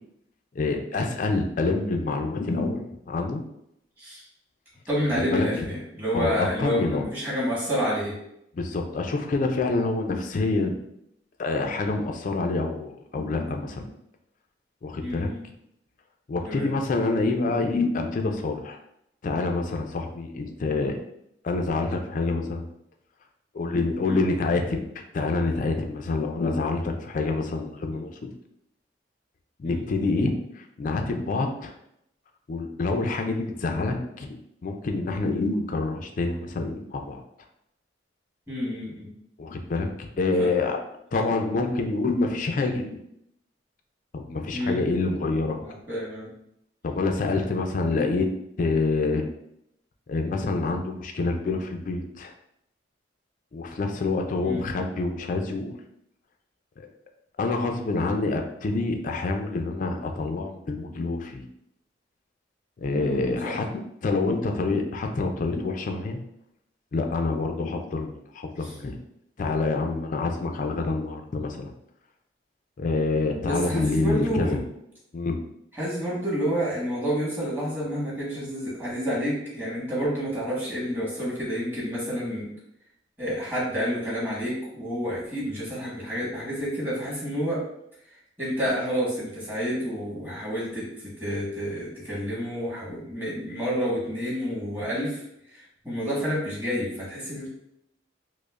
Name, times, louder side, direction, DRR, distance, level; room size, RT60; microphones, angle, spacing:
voice 1, 0.6-3.4 5.1-5.7 6.1-7.1 8.5-10.8 11.4-13.9 14.8-15.3 16.3-18.8 19.2-21.0 21.4-22.7 23.5-28.3 29.6-31.7 32.5-34.4 34.6-37.2 39.4-40.8 41.1-43.0 44.1-45.6 46.8-48.3 48.6-49.3 50.1-52.3 53.5-55.7 56.8-56.9 57.4-61.5 62.8-66.2 66.9-69.0 69.4-71.7 72.8-74.6 75.1-75.4, left 3 dB, 45° left, 4 dB, 0.4 m, -27 dB
voice 2, 4.9-8.2 15.0-15.4 16.4-16.7 24.0-24.2 29.6-29.8 38.5-39.1 40.4-40.5 41.1-41.2 44.5-44.8 45.6-46.3 54.4-54.6 63.0-63.2 63.4-63.5 68.6-68.7 73.4-74.6 75.7-82.5 83.2-87.6 88.4-95.2 95.5-97.5, equal, 10° right, -8 dB, 1.4 m, -29 dB
5.0 x 2.0 x 2.4 m, 0.77 s
head